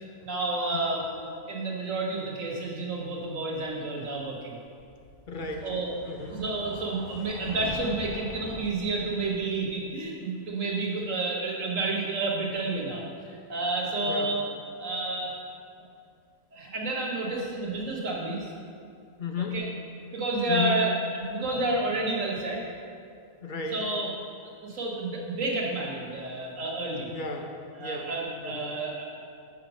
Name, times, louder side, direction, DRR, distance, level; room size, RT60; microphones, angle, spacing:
voice 1, 0.2-4.6 5.6-5.9 6.2-14.4 14.8-15.3 16.5-18.5 19.4-19.7 20.1-20.9 21.3-22.6 23.7-24.1 24.6-27.1 27.8-29.1, right 2 dB, 60° right, -2 dB, 1.7 m, -30 dB
sound 1, 4.8-9.7, equal, 20° left, 1.1 m, -43 dB
voice 2, 5.3-5.7 6.1-6.4 14.1-14.3 19.2-19.6 20.5-20.8 23.4-23.8 27.1-28.1 28.4-28.7, left 4 dB, 60° left, 3 dB, 0.5 m, -33 dB
6.2 x 5.6 x 6.2 m, 2.4 s
omnidirectional pair, 1.5 m